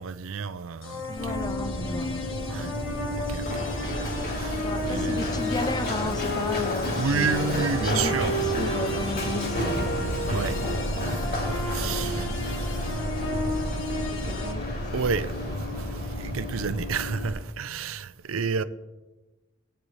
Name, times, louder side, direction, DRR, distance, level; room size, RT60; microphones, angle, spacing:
voice 1, 0.0-1.3 2.5-2.7 3.2-3.7 4.4-5.4 6.9-8.4 10.2-13.0 13.9-14.0 14.9-18.6, right 5 dB, 85° right, 0.5 m, -31 dB
sound 1, 0.8-14.5, equal, 65° left, 1.4 m, -34 dB
voice 2, 1.1-2.3 2.6-2.8 4.6-10.2 11.7-12.4 13.9-14.7, left 3 dB, 20° left, 0.4 m, -35 dB
Run, 1.2-17.3, left 1 dB, 50° left, 2.7 m, -30 dB
16.5 x 8.9 x 3.2 m
head